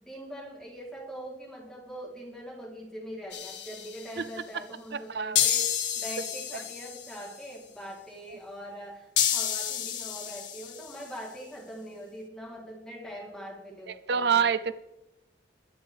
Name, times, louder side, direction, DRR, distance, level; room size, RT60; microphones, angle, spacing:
voice 1, 0.0-14.5, equal, 5° left, -3 dB, 3.6 m, -42 dB
sound 1, 3.3-4.2 5.4-7.3 9.2-11.1, left 10 dB, 85° left, 1.8 m, -30 dB
voice 2, 4.9-5.4 14.1-14.7, right 6 dB, 65° right, 14 dB, 0.5 m, -26 dB
22.5 x 8.6 x 3.5 m, 0.98 s
head